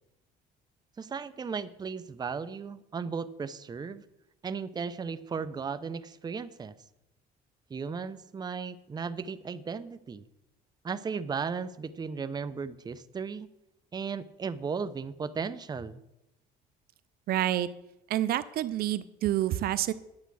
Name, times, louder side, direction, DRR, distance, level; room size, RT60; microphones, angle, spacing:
voice 1, 1.0-4.0 4.4-6.7 7.7-10.2 10.8-13.5 13.9-16.0, right 5 dB, 25° right, 12 dB, 0.6 m, -36 dB
voice 2, 17.3-17.7 18.1-19.9, right 13 dB, 65° right, 15 dB, 0.5 m, -28 dB
10.5 x 8.0 x 6.2 m, 0.88 s
cardioid pair, 110°, 17 cm